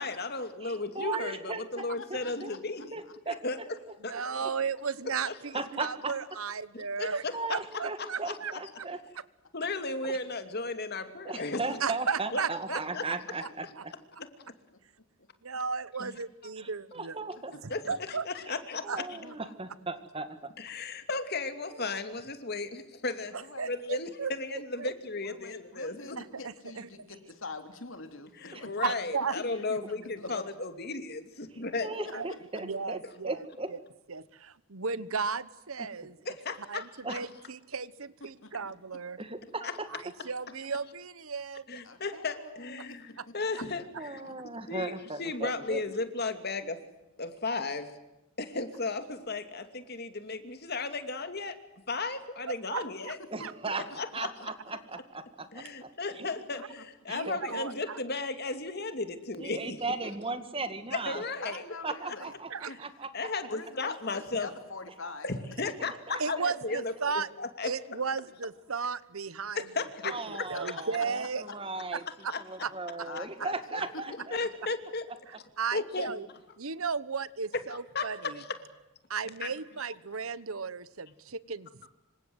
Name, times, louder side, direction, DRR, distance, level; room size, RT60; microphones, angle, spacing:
voice 1, 0.0-3.0 3.4-3.6 4.0-4.1 5.3-5.4 6.7-7.3 7.7-8.6 9.5-11.6 12.3-12.4 12.7-13.0 16.0-16.1 17.7-18.8 20.6-23.3 23.7-26.2 28.4-31.9 36.3-37.2 39.6-39.7 41.7-44.2 44.7-44.9 45.2-46.8 47.2-48.0 48.4-51.6 51.9-53.2 54.0-54.3 55.5-59.8 60.9-61.6 62.7-62.8 63.1-64.5 65.2-67.1 67.4-67.7 69.5-70.1 72.3-72.4 74.1-75.0 75.7-76.1 77.7-78.6 79.4-79.5, left 3 dB, 50° left, 8 dB, 2.7 m, -35 dB
voice 2, 0.6-2.5 2.9-3.4 4.1-4.2 5.5-6.1 7.0-9.0 10.0-10.2 11.2-13.9 16.6-17.6 18.5-18.6 18.8-20.5 28.5-28.7 31.8-33.0 33.2-33.7 37.0-37.1 39.2-39.9 44.0-45.8 53.3-53.9 54.1-55.9 56.2-56.3 57.1-57.4 59.4-61.2 61.8-63.3 65.8-66.5 70.0-72.0 72.4-74.4, right 3 dB, 25° right, 10 dB, 2.0 m, -37 dB
voice 3, 2.0-2.6 4.4-4.5 14.2-14.3 17.3-17.6 19.1-19.5 23.3-23.8 25.2-28.7 29.3-30.4 32.0-32.4 38.4-38.5 41.8-43.3 52.7-52.9 53.4-53.5 56.8-56.9 61.4-62.3 62.7-62.8 63.5-65.3 70.3-70.7 73.0-73.8 76.1-76.2, left 3 dB, 65° left, 7 dB, 3.4 m, -45 dB
voice 4, 4.0-7.2 7.5-8.5 8.8-8.9 11.8-13.1 13.4-13.5 13.8-13.9 15.4-17.2 17.9-18.3 18.8-19.0 21.7-22.0 23.3-24.9 26.2-26.9 28.8-29.4 32.1-32.3 32.6-33.8 34.1-36.2 36.7-39.2 39.9-41.8 42.8-42.9 43.2-43.3 52.5-53.5 57.1-58.0 62.5-62.8 66.2-67.3 67.6-69.7 70.5-71.4 71.9-72.3 72.6-72.7 73.0-73.1 75.6-76.3 76.6-78.4 79.1-81.9, right 5 dB, 75° right, 17 dB, 1.1 m, -35 dB
27.5 x 25.5 x 8.0 m, 0.94 s
head